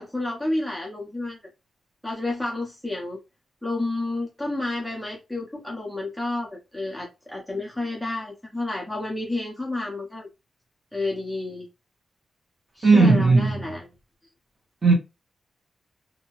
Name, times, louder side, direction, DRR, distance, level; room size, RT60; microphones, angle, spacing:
voice 1, 0.0-1.4 2.0-3.2 3.6-10.3 10.9-11.7 12.8-13.9, left 2 dB, ahead, 0.7 m, -30 dB
voice 2, 12.8-13.7 14.8-14.9, right 3 dB, 35° right, 1.2 m, -17 dB
2.7 x 2.2 x 2.9 m
wide cardioid pair, 155°, 0 cm